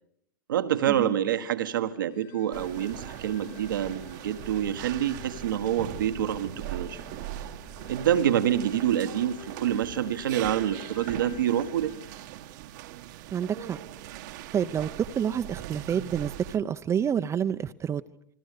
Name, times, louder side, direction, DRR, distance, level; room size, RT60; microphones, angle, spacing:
voice 1, 0.5-7.0 7.9-11.9, right 10 dB, 80° right, 6 dB, 1.5 m, -27 dB
sound 1, 2.1-13.3, left 8 dB, 70° left, 3.9 m, -53 dB
sound 2, 2.5-16.6, right 13 dB, 60° right, 1.4 m, -40 dB
voice 2, 13.3-13.8 14.5-14.9 15.2-18.0, right 8 dB, 25° right, 8 dB, 0.9 m, -28 dB
29.0 x 20.5 x 6.8 m, 0.73 s
hypercardioid pair, 100°, 11 cm